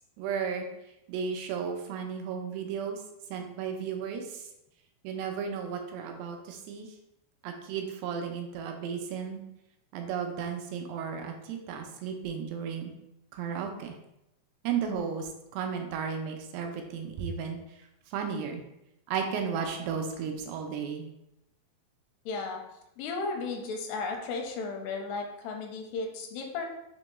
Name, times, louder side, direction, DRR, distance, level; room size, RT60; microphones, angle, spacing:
voice 1, 0.2-0.7 1.1-3.0 3.3-4.5 5.0-6.9 7.4-9.4 9.9-12.9 13.3-14.0 14.6-17.6 18.1-18.6 19.1-21.1, right 6 dB, 85° right, 4 dB, 2.7 m, -34 dB
voice 2, 22.3-22.6 23.0-26.7, left 4 dB, 85° left, 3 dB, 2.6 m, -34 dB
6.6 x 2.2 x 3.0 m, 0.86 s
omnidirectional pair, 4.7 m